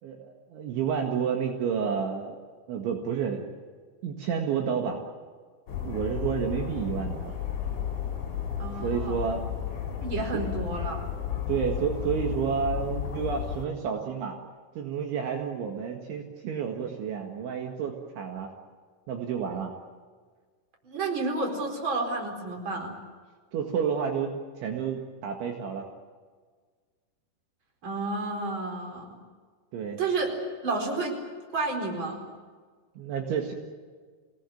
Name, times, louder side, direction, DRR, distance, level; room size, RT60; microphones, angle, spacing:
voice 1, 0.0-2.4 2.7-3.5 4.0-5.0 5.8-7.4 8.8-9.4 10.3-10.4 11.5-14.4 14.8-18.5 19.1-19.7 23.5-25.9 29.7-30.0 33.0-33.5, right 7 dB, 65° right, 2 dB, 4.0 m, -30 dB
sound 1, 5.7-13.7, left 9 dB, 40° left, 4.5 m, -33 dB
voice 2, 8.6-9.2 10.0-11.0 20.8-22.9 27.8-29.2 30.0-30.3 30.6-31.2 31.5-32.2, right 3 dB, 25° right, 2 dB, 4.6 m, -30 dB
28.0 x 18.5 x 9.3 m, 1.5 s
omnidirectional pair, 6.0 m